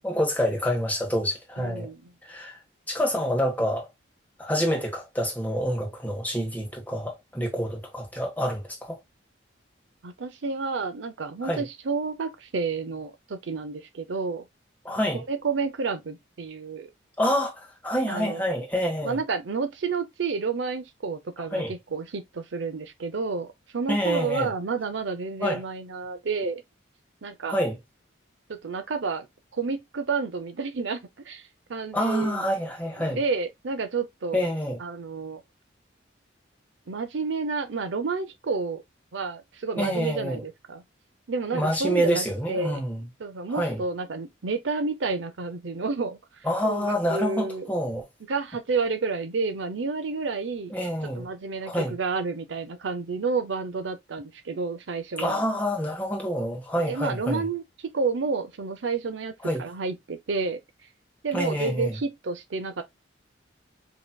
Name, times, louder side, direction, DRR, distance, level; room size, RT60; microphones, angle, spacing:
voice 1, 0.0-1.9 2.3-2.6 2.9-3.9 4.4-9.0 11.4-11.6 14.8-15.2 17.2-19.2 21.5-21.7 23.9-24.5 25.4-25.6 27.5-27.7 31.9-33.2 34.3-34.8 39.8-40.4 41.5-43.0 43.5-43.8 46.4-48.0 50.7-51.3 51.7-51.9 55.2-57.4 59.4-59.6 61.3-61.9, equal, 10° left, 1.4 m, -27 dB
voice 2, 1.6-2.1 10.0-14.4 15.1-16.9 18.1-18.4 19.0-26.6 27.2-27.6 28.5-29.3 29.5-31.0 31.2-32.4 33.0-34.4 34.8-35.4 36.9-38.8 39.1-40.8 41.3-42.8 43.2-47.7 48.3-50.8 51.2-55.4 56.8-59.3 59.6-60.6 61.2-62.8, right 4 dB, 70° right, 0.6 m, -30 dB
5.1 x 2.9 x 2.2 m
head